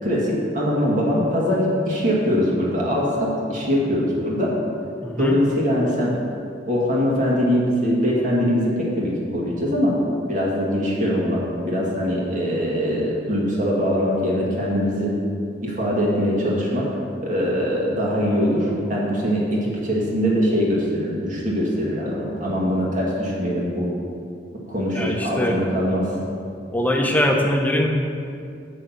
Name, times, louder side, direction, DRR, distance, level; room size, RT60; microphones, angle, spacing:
voice 1, 0.0-4.5 5.2-6.1 6.7-10.0 10.3-15.1 15.6-16.9 17.2-23.9 24.7-26.1, equal, 45° right, -4 dB, 2.2 m, -22 dB
voice 2, 5.0-5.4 24.9-25.6 26.7-27.9, left 1 dB, 10° left, 1 dB, 0.9 m, -21 dB
8.0 x 6.3 x 7.4 m, 2.5 s
head